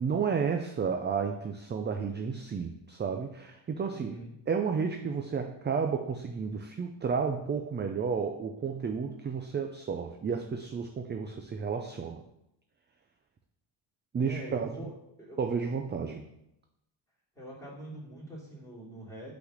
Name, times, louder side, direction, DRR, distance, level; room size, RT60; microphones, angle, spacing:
voice 1, 0.0-4.2 4.5-12.2 14.1-14.9 15.4-16.3, right 6 dB, 25° right, 5 dB, 0.4 m, -32 dB
voice 2, 3.9-4.3 14.3-14.9 15.2-15.4 17.3-19.3, right 1 dB, 5° left, -7 dB, 2.8 m, -44 dB
5.8 x 4.1 x 6.2 m, 0.84 s
cardioid pair, 125°, 47 cm